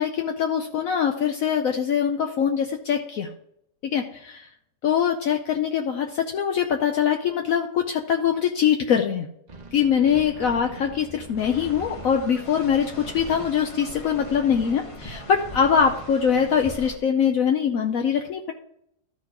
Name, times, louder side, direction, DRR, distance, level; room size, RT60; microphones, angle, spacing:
voice 1, 0.0-3.3 3.8-4.5 4.8-9.3 9.7-18.5, left 7 dB, 65° left, 4 dB, 1.0 m, -23 dB
sound 1, 9.5-16.5, right 3 dB, 35° right, 0.8 m, -42 dB
sound 2, 11.4-17.0, left 1 dB, 25° left, 0.8 m, -41 dB
13.0 x 4.4 x 4.7 m, 0.74 s
omnidirectional pair, 1.6 m